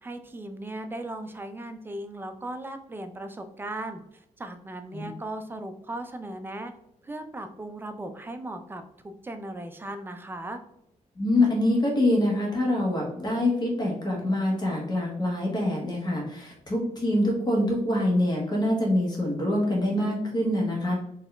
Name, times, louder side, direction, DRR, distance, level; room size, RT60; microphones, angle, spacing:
voice 1, 0.0-4.0 4.4-6.7 7.0-10.6, right 1 dB, 15° right, 7 dB, 0.4 m, -37 dB
voice 2, 11.1-20.9, left 1 dB, 30° left, -1 dB, 1.4 m, -25 dB
4.5 x 2.9 x 3.3 m, 0.81 s
wide cardioid pair, 145°, 13 cm